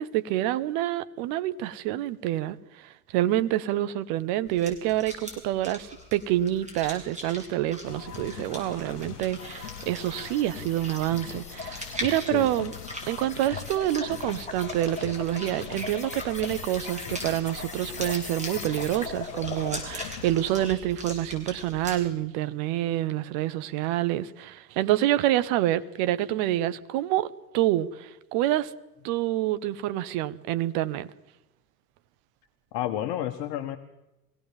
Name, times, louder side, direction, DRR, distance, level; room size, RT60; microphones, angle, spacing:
voice 1, 0.0-12.7 13.1-27.3 27.5-28.7 29.0-31.1, right 13 dB, 50° right, 1.1 m, -27 dB
sound 1, 4.5-22.0, equal, 15° right, 7.4 m, -41 dB
sound 2, 7.8-20.7, left 9 dB, 75° left, 1.0 m, -42 dB
sound 3, 9.4-20.2, left 4 dB, 15° left, 2.8 m, -41 dB
voice 2, 32.7-33.8, left 11 dB, 50° left, 1.4 m, -30 dB
23.5 x 17.5 x 7.3 m
figure-of-eight pair, 70°, 47 cm